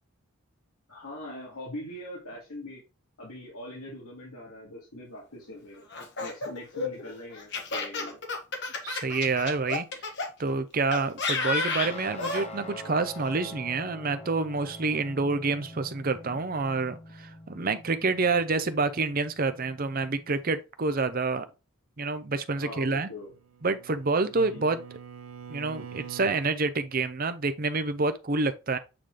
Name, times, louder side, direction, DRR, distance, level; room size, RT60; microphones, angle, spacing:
voice 1, 0.9-2.8 3.2-5.9 6.2-8.2 16.2-16.4 22.5-23.3 24.3-24.6, left 1 dB, 90° left, 2.1 m, -42 dB
Laughter, 5.9-10.3 10.9-12.5, left 4 dB, 50° left, 1.4 m, -31 dB
voice 2, 8.8-9.9 10.4-21.5 22.0-23.1 23.6-24.8 25.5-28.8, right 3 dB, 40° right, 0.6 m, -28 dB
Guitar, 11.8-20.6, left 1 dB, 30° left, 0.7 m, -45 dB
Bowed string instrument, 23.1-26.5, right 7 dB, 85° right, 0.6 m, -45 dB
8.6 x 3.2 x 3.8 m
head